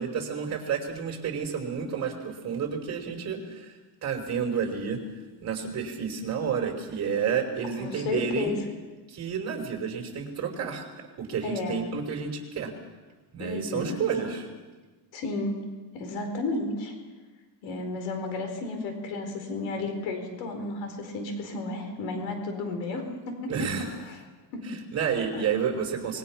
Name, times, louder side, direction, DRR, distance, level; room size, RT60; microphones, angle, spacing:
voice 1, 0.0-3.7 4.0-5.0 5.4-8.6 9.1-10.8 11.2-12.7 13.3-14.5 23.5-23.9 24.7-26.2, right 6 dB, 35° right, 3 dB, 4.8 m, -30 dB
voice 2, 7.7-8.6 11.4-11.9 13.4-14.3 15.1-15.7 15.9-16.9 17.6-23.5 23.8-24.2 24.5-24.8 25.3-25.5, left 3 dB, 80° left, 5 dB, 4.3 m, -33 dB
25.5 x 22.0 x 6.0 m, 1.3 s
cardioid pair, 135°, 45 cm